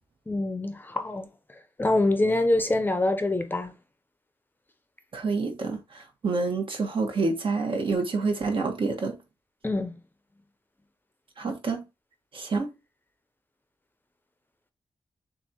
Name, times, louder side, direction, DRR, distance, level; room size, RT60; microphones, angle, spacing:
voice 1, 0.3-1.3 1.8-3.7 9.6-9.9, left 2 dB, 20° left, 0.6 m, -25 dB
voice 2, 5.1-9.2 11.4-11.8 12.3-12.7, right 3 dB, 60° right, 1.3 m, -28 dB
7.0 x 2.5 x 2.9 m
wide cardioid pair, 140°, 10 cm